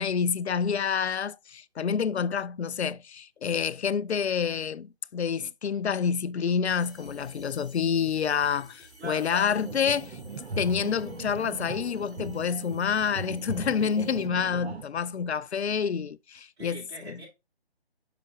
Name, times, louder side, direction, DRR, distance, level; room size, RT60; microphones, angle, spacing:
voice 1, 0.0-10.2 10.6-17.2, left 7 dB, 85° left, 0.5 m, -28 dB
sound 1, 6.6-14.2, right 1 dB, 5° left, 4.0 m, -54 dB
voice 2, 9.0-9.5 15.6-15.8 16.6-17.3, right 2 dB, 25° right, 4.7 m, -42 dB
sound 2, 9.5-14.8, right 3 dB, 80° right, 0.9 m, -39 dB
5.8 x 5.8 x 3.6 m
figure-of-eight pair, 160°, 32 cm